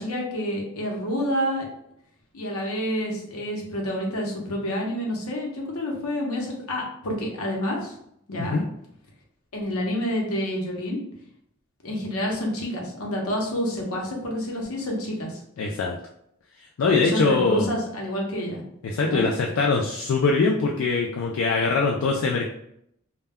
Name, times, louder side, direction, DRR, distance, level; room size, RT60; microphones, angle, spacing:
voice 1, 0.0-1.7 2.3-7.9 8.3-8.6 9.5-11.0 11.8-15.4 16.9-18.6 19.0-19.3, equal, 85° left, -1 dB, 0.8 m, -28 dB
voice 2, 15.6-16.0 16.8-17.7 18.8-22.5, left 4 dB, 70° left, 1 dB, 0.3 m, -22 dB
2.2 x 2.1 x 3.5 m, 0.73 s
head